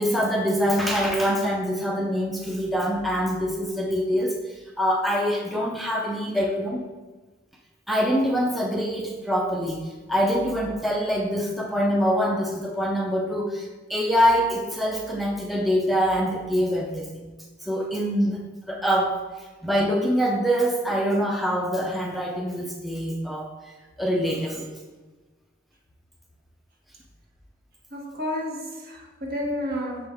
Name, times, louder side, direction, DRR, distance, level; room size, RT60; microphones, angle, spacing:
voice 1, 0.0-4.4 4.8-6.8 7.9-9.8 10.1-17.3 17.7-19.2 19.6-23.5 24.0-24.7, equal, ahead, -1 dB, 0.5 m, -24 dB
voice 2, 27.9-30.1, left 1 dB, 55° right, 0 dB, 1.2 m, -31 dB
6.2 x 5.1 x 3.5 m, 1.3 s
head